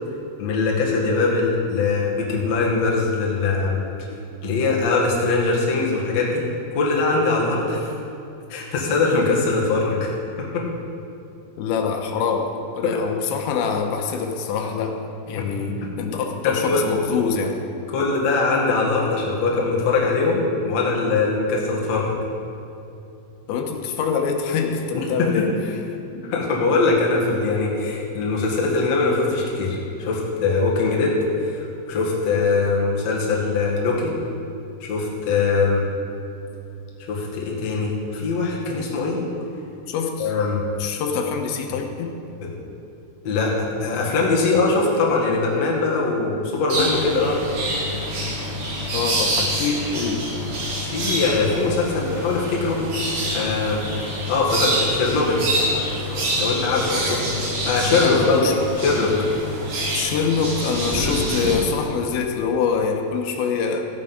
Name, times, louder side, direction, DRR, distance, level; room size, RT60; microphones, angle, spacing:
voice 1, 0.4-3.8 4.4-6.4 6.7-7.9 8.5-10.1 10.4-10.7 12.8-13.0 16.4-16.8 17.9-22.2 24.9-25.3 26.2-34.1 34.8-35.8 37.1-39.2 40.2-40.6 42.4-42.5 43.2-47.4 50.8-52.8 53.3-53.8 54.3-55.5 56.4-57.2 57.6-58.4 58.8-59.1 61.0-61.2, left 3 dB, 50° left, -3 dB, 2.4 m, -22 dB
voice 2, 11.6-12.5 12.8-15.0 15.3-17.6 23.5-25.8 39.9-40.3 40.8-42.1 48.9-50.2 58.0-58.5 59.9-63.8, left 5 dB, 90° left, 3 dB, 3.2 m, -25 dB
sound 1, 46.7-61.5, equal, 60° right, 4.8 m, -26 dB
15.0 x 8.6 x 5.7 m, 2.7 s
omnidirectional pair, 5.1 m